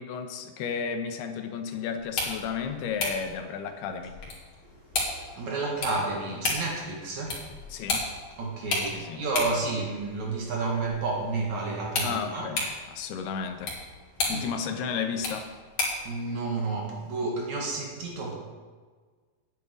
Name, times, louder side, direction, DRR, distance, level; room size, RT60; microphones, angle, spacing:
voice 1, 0.0-4.1 7.7-8.1 8.9-9.2 12.0-12.6 12.9-13.7 14.3-15.5, left 6 dB, 85° left, 6 dB, 3.0 m, -33 dB
sound 1, 2.0-16.1, left 2 dB, 40° left, 3.5 m, -35 dB
voice 2, 4.7-7.5 8.4-12.5 14.3-14.5 16.0-18.4, right 3 dB, 50° right, -1 dB, 2.9 m, -31 dB
9.9 x 8.4 x 9.3 m, 1.5 s
omnidirectional pair, 4.6 m